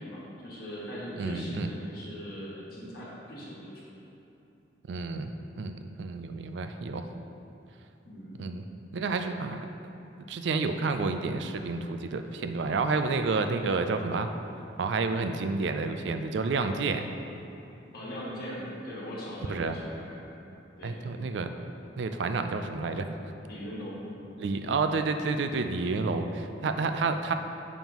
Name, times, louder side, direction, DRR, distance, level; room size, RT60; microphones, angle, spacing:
voice 1, 0.0-3.9 8.0-8.4 17.9-20.2 20.8-21.2 23.5-24.1, equal, 55° left, -7 dB, 1.3 m, -40 dB
voice 2, 1.2-1.7 4.9-5.3 5.6-7.0 8.4-8.7 8.9-9.6 10.3-14.3 14.8-17.1 19.5-19.8 20.8-21.5 22.0-23.2 24.4-27.3, right 4 dB, 70° right, 8 dB, 0.4 m, -30 dB
7.1 x 5.4 x 3.0 m, 2.8 s
head